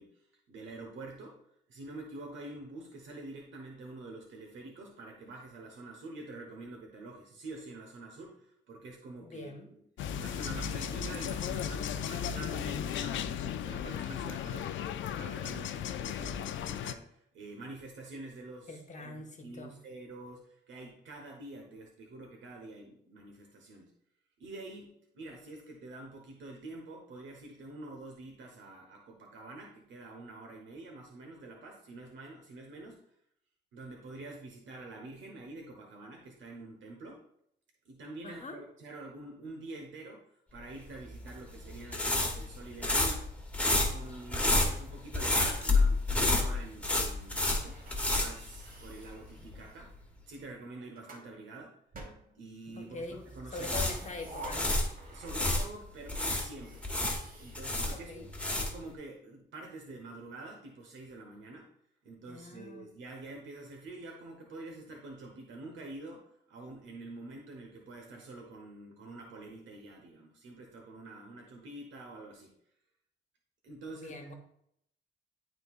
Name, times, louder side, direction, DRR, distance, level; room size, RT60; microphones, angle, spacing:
voice 1, 0.0-1.3 1.7-9.5 10.2-14.9 15.2-23.9 24.4-33.0 33.7-37.2 37.8-40.2 40.5-43.3 43.6-47.8 48.1-49.9 50.3-51.7 52.3-53.9 55.0-56.8 57.4-61.7 62.0-66.2 66.5-72.5 73.6-74.3, right 2 dB, 80° right, 1 dB, 1.2 m, -47 dB
voice 2, 9.2-9.7 18.7-19.7 38.2-38.6 52.8-54.8 57.9-58.3 62.3-62.9 73.9-74.3, left 3 dB, 40° left, 3 dB, 1.3 m, -43 dB
sound 1, 10.0-16.9, left 9 dB, 80° left, 0.5 m, -36 dB
sound 2, 41.1-49.1 49.4-49.6 53.3-55.7 56.1-58.9, left 2 dB, 5° left, 1.5 m, -29 dB
sound 3, 47.6-49.9 50.6-51.3 51.9-52.8 53.6-55.7 56.0-56.1 56.5-58.6, right 2 dB, 45° right, 1.7 m, -50 dB
11.5 x 3.9 x 2.5 m, 0.72 s
cardioid pair, 80°, 19 cm